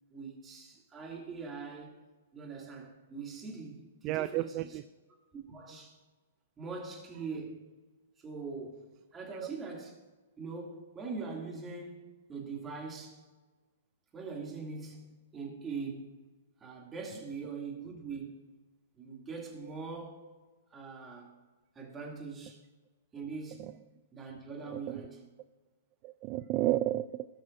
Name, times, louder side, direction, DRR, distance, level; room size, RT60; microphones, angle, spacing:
voice 1, 0.1-2.0 2.3-4.8 5.3-6.0 6.6-7.6 8.2-8.9 9.1-10.0 10.4-13.2 14.1-16.1 16.6-18.5 18.9-20.3 20.7-21.4 21.7-22.6 23.1-23.7 24.1-25.3, right 4 dB, 20° right, 2.6 m, -42 dB
voice 2, 4.0-4.8 26.0-27.3, right 15 dB, 40° right, 0.3 m, -31 dB
18.0 x 6.2 x 2.6 m
hypercardioid pair, 125°, 0 cm